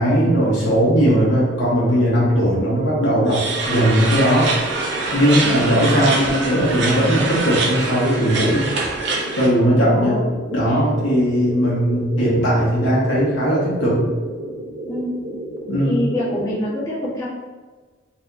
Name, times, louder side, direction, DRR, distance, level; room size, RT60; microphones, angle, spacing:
voice 1, 0.0-4.5 5.1-8.7 9.3-10.2 10.5-14.0 15.7-16.0, equal, 70° left, -6 dB, 1.2 m, -18 dB
sound 1, 0.9-16.7, right 1 dB, 90° right, 0.9 m, -32 dB
sound 2, 3.3-9.5, right 3 dB, 60° right, 0.7 m, -24 dB
voice 2, 9.8-10.2 10.7-10.8 14.9-15.1 15.9-17.2, left 1 dB, 15° left, -11 dB, 1.5 m, -25 dB
4.2 x 3.3 x 2.7 m, 1.4 s
head